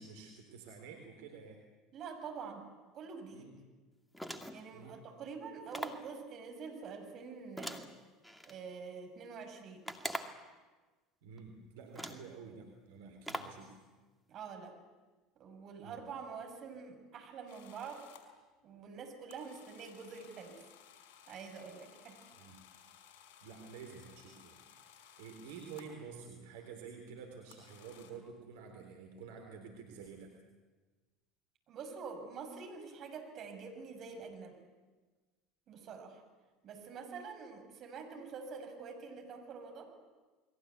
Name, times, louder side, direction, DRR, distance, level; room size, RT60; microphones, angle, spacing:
voice 1, 0.0-1.6 3.3-3.6 4.7-5.0 11.2-13.8 15.8-16.0 22.4-22.6 23.4-24.6 24.9-30.3, right 5 dB, 70° right, 3 dB, 3.8 m, -50 dB
voice 2, 1.9-2.7 2.9-3.5 4.5-7.9 8.5-9.8 14.3-14.8 15.4-18.0 18.6-20.6 21.3-22.2 31.7-34.6 35.7-36.2 36.6-39.9, right 5 dB, 45° right, 4 dB, 6.3 m, -46 dB
sound 1, 4.1-4.7 5.7-6.1 7.6-8.6 9.8-10.5 11.4-11.5 11.9-12.3 13.2-13.6, equal, 5° left, 2.4 m, -42 dB
sound 2, 17.5-18.3 19.3-26.0 27.5-28.1, left 9 dB, 65° left, 5.1 m, -59 dB
29.5 x 21.5 x 8.3 m, 1.3 s
hypercardioid pair, 70°, 0 cm